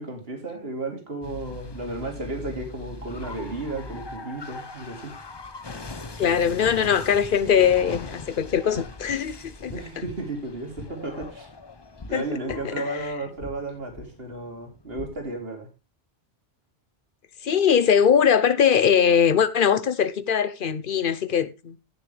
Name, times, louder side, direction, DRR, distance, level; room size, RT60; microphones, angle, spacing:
voice 1, 0.0-5.1 6.2-6.7 9.7-11.5 12.1-15.7, right 2 dB, 60° right, 3.0 m, -34 dB
sound 1, 1.2-15.4, left 3 dB, 30° left, 0.6 m, -41 dB
voice 2, 6.2-9.8 12.1-12.2 12.6-13.0 17.4-21.8, left 7 dB, 55° left, 0.9 m, -21 dB
16.0 x 6.8 x 3.3 m
omnidirectional pair, 1.1 m